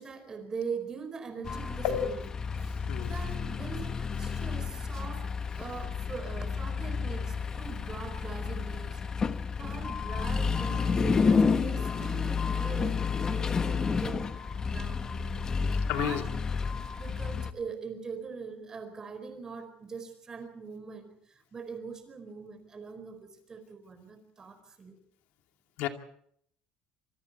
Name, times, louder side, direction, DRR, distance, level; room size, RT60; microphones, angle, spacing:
voice 1, 0.0-2.3 2.6-5.3 5.6-9.0 9.6-14.3 14.6-15.1 15.7-16.3 17.0-25.0, right 5 dB, 25° right, 8 dB, 4.6 m, -42 dB
sound 1, 1.4-17.5, left 5 dB, 25° left, 1.2 m, -30 dB
voice 2, 15.9-16.2 25.8-25.9, left 10 dB, 80° left, 5 dB, 2.5 m, -30 dB
27.0 x 25.5 x 4.3 m, 0.65 s
cardioid pair, 160°, 3 cm